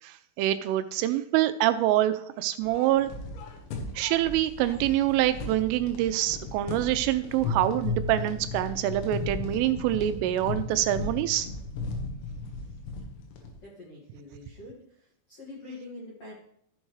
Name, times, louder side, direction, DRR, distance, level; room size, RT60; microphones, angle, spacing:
voice 1, 0.0-3.1 4.0-11.5, right 13 dB, 85° right, 10 dB, 3.0 m, -26 dB
sound 1, 2.6-13.6, left 3 dB, 85° left, 4.0 m, -36 dB
voice 2, 13.6-14.8 15.3-16.3, left 2 dB, 55° left, -6 dB, 1.7 m, -44 dB
14.0 x 6.5 x 3.1 m, 0.68 s
omnidirectional pair, 5.8 m